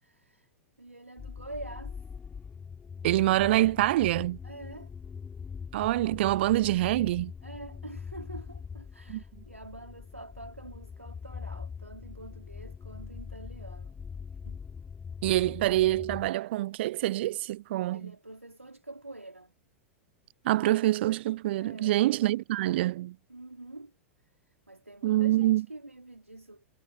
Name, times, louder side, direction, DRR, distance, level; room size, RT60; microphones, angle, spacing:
voice 1, 0.0-0.5 0.8-2.0 4.4-4.9 7.4-14.0 14.4-14.6 17.9-19.5 21.6-22.0 23.3-23.9 24.5-26.6, right 2 dB, 85° right, 3.2 m, -46 dB
sound 1, 1.2-16.3, left 6 dB, 15° left, 5.7 m, -42 dB
voice 2, 3.0-4.4 5.7-7.3 9.1-9.2 15.2-18.1 20.4-23.2 25.0-25.6, right 16 dB, 50° right, 0.5 m, -26 dB
figure-of-eight pair, 95°, 7 cm